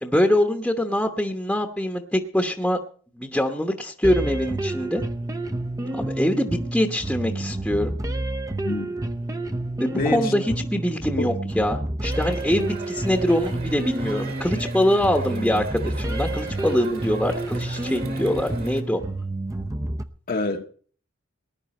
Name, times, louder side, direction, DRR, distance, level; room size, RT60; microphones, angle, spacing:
voice 1, 0.0-2.8 3.2-5.0 5.9-7.9 9.8-19.0, left 1 dB, 5° left, 1.1 m, -24 dB
sound 1, 4.0-20.0, right 2 dB, 15° right, 0.7 m, -29 dB
voice 2, 8.6-9.0 9.9-10.3 11.2-11.3 20.3-20.7, left 3 dB, 45° left, 1.1 m, -26 dB
Crowd, 12.0-18.8, right 2 dB, 50° right, 2.2 m, -38 dB
19.0 x 10.5 x 4.3 m
head